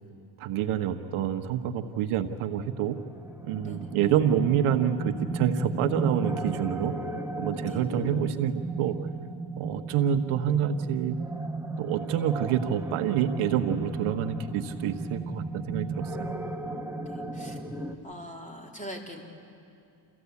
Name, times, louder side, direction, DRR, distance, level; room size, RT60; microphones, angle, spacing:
voice 1, 0.4-3.0 3.4-6.9 7.4-9.0 9.6-11.2 11.8-16.3, right 9 dB, 75° right, 7 dB, 1.2 m, -27 dB
sound 1, 2.7-17.9, right 3 dB, 5° right, 1.7 m, -35 dB
voice 2, 17.0-17.6 18.0-19.2, equal, 15° left, 1 dB, 3.9 m, -42 dB
29.0 x 15.0 x 8.4 m, 2.5 s
supercardioid pair, 75°, 50 cm